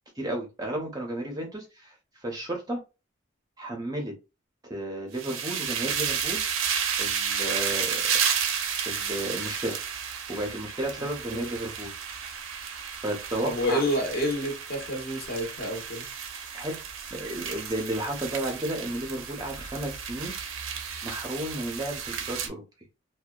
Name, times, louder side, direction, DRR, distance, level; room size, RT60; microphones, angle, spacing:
voice 1, 0.2-1.9 2.2-2.8 3.6-4.1 4.6-6.4 7.0-8.0 8.9-9.8 10.3-12.3 13.0-13.8 16.5-16.8 17.1-20.4 21.0-22.6, right 1 dB, 20° right, 0.6 m, -33 dB
sound 1, 5.1-22.5, right 7 dB, 85° right, 0.5 m, -32 dB
voice 2, 13.4-16.0, equal, 50° left, 0.8 m, -29 dB
2.7 x 2.1 x 2.2 m
head